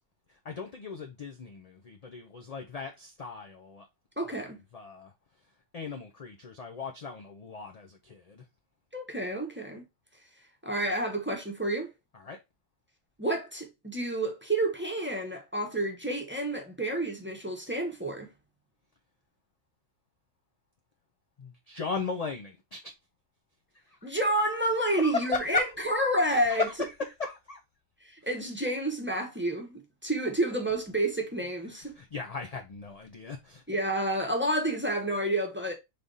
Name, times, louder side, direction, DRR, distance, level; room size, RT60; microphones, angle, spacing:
voice 1, 0.4-3.9 4.2-5.1 5.7-8.4 12.1-12.4 21.4-22.9 23.9-24.1 24.7-25.7 26.3-27.6 28.2-28.4 31.4-33.6, left 4 dB, 55° left, 0.4 m, -37 dB
voice 2, 4.2-4.6 8.9-9.8 10.6-11.9 13.2-18.3 24.0-26.6 28.0-31.9 33.7-35.7, right 1 dB, 10° right, 0.8 m, -29 dB
3.6 x 3.4 x 3.9 m
omnidirectional pair, 1.4 m